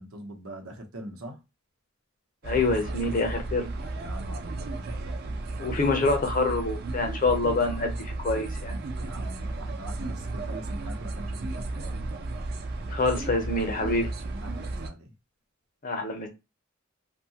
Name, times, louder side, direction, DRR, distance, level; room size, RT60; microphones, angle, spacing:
voice 1, 0.0-1.4 4.0-5.6 9.0-12.0 14.4-15.1, right 1 dB, 85° right, 0.8 m, -43 dB
voice 2, 2.4-3.7 5.6-8.8 12.9-14.1 15.8-16.3, left 3 dB, 40° left, 0.6 m, -26 dB
sound 1, 2.4-14.9, right 2 dB, 45° right, 0.4 m, -34 dB
2.7 x 2.2 x 2.7 m
head